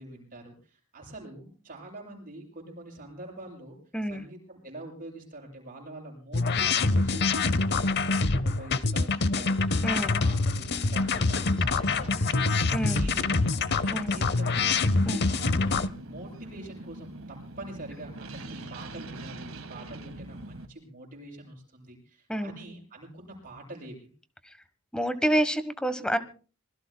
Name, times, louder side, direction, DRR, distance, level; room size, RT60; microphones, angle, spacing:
voice 1, 0.0-3.8 4.1-13.3 13.7-14.8 15.2-24.1, right 1 dB, 45° right, -1 dB, 7.4 m, -45 dB
voice 2, 3.9-4.2 9.8-10.2 12.7-13.0 13.9-14.2 15.1-15.3 22.3-22.5 24.4-24.6 24.9-26.2, right 1 dB, 5° left, 11 dB, 1.1 m, -28 dB
sound 1, 6.3-15.9, left 3 dB, 55° left, 0.7 m, -25 dB
sound 2, 10.8-20.7, right 1 dB, 85° right, 1.6 m, -43 dB
26.5 x 21.5 x 2.2 m, 0.38 s
head